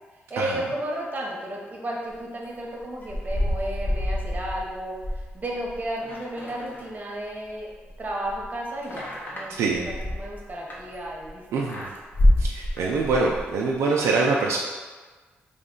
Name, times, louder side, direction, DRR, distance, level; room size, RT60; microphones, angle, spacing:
voice 1, 0.3-7.7 8.0-11.7, right 1 dB, 40° right, -2 dB, 0.9 m, -33 dB
sound 1, 2.8-7.3 7.6-11.3 11.7-13.5, left 1 dB, 45° left, 0.8 m, -27 dB
voice 2, 9.5-10.0 11.5-11.9 12.4-14.6, right 3 dB, 85° right, -2 dB, 0.3 m, -24 dB
3.2 x 2.2 x 3.7 m, 1.4 s
cardioid pair, 60°, 5 cm